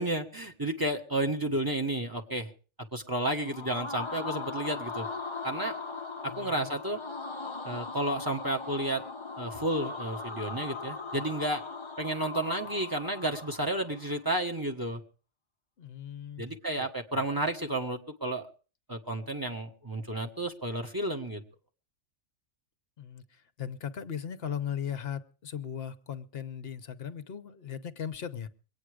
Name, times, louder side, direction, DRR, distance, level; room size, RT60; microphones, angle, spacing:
voice 1, 0.0-2.5 2.9-5.1 5.4-5.7 6.4-7.0 7.6-9.0 9.4-11.6 12.0-15.0 16.4-18.5 18.9-21.4, right 1 dB, 15° right, 1.5 m, -31 dB
Singing Ghosts I, 3.3-14.2, left 4 dB, 25° left, 1.0 m, -39 dB
voice 2, 6.3-6.7 15.8-17.2 23.0-28.5, left 8 dB, 50° left, 1.1 m, -38 dB
23.0 x 9.1 x 5.0 m
omnidirectional pair, 1.3 m